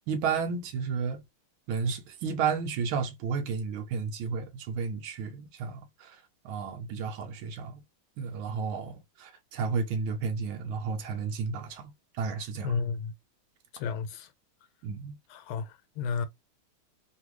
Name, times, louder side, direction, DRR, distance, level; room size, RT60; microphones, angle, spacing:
voice 1, 0.1-1.2 1.7-6.2 6.4-7.8 8.2-11.9 12.2-12.8 14.8-15.1, right 5 dB, 75° right, 1.4 m, -32 dB
voice 2, 12.6-13.1 13.7-14.3 15.3-16.3, left 5 dB, 80° left, 1.4 m, -32 dB
3.6 x 2.3 x 3.0 m
omnidirectional pair, 2.3 m